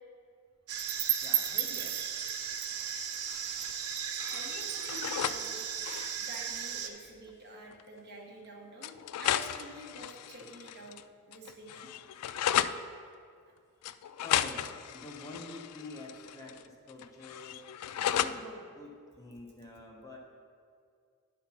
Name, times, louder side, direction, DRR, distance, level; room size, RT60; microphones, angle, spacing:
sound 1, 0.7-6.9, right 9 dB, 75° right, 0.7 m, -34 dB
voice 1, 1.2-2.0 14.2-17.6 17.9-20.2, left 2 dB, 15° left, -1 dB, 0.9 m, -47 dB
sound 2, 3.3-3.9 4.2-5.4 5.7-6.2 7.3-7.4 7.7-7.8 8.8-11.0 11.3-12.8 13.8-16.6 16.9-18.4, left 11 dB, 80° left, 0.3 m, -34 dB
voice 2, 4.2-5.6 6.2-8.9 9.2-11.0 11.3-11.9, right 1 dB, 50° right, -1 dB, 1.2 m, -48 dB
10.0 x 4.5 x 5.6 m, 2.2 s
head